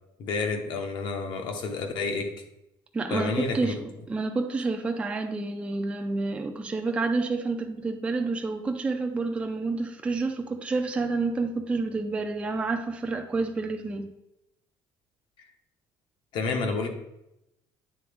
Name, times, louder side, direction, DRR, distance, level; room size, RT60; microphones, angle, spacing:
voice 1, 0.2-2.3 3.1-3.8 15.4-15.5 16.3-16.9, left 4 dB, 55° left, 5 dB, 0.9 m, -29 dB
voice 2, 2.9-14.1, right 3 dB, 10° right, 4 dB, 0.4 m, -29 dB
9.2 x 3.8 x 3.4 m, 0.86 s
cardioid pair, 180°, 10 cm